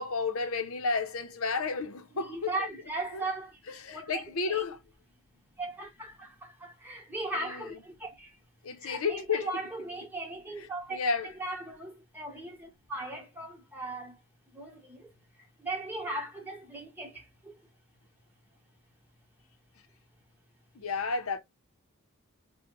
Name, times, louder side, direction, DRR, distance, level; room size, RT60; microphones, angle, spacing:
voice 1, 0.0-2.7 3.1-3.2 3.8-4.8 7.4-7.6 8.6-9.5 10.9-11.3 20.7-21.4, left 4 dB, 75° left, 0.7 m, -32 dB
voice 2, 2.1-3.5 3.9-4.2 4.5-4.6 5.6-8.3 8.8-11.0 11.2-14.1 14.5-15.1 15.6-17.6, right 2 dB, 10° right, 1.0 m, -38 dB
4.6 x 2.2 x 3.0 m
head